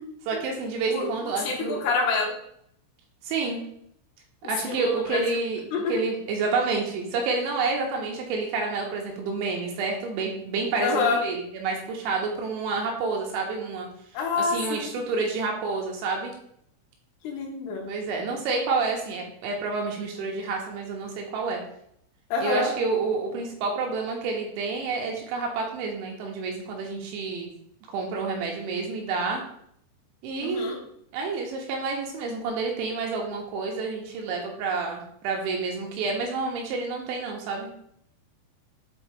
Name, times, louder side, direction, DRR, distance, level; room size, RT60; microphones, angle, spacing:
voice 1, 0.3-1.8 3.2-3.6 4.4-5.6 5.9-13.9 14.4-16.3 17.9-21.6 22.4-27.5 27.9-29.4 30.2-30.7 31.1-37.7, right 4 dB, 75° right, 0 dB, 3.1 m, -29 dB
voice 2, 0.9-2.4 4.6-5.2 5.7-6.0 10.8-11.2 14.1-14.9 17.2-17.9 22.3-22.7 30.4-30.8, left 4 dB, 80° left, -1 dB, 3.8 m, -27 dB
8.3 x 4.0 x 3.5 m, 0.70 s
omnidirectional pair, 5.7 m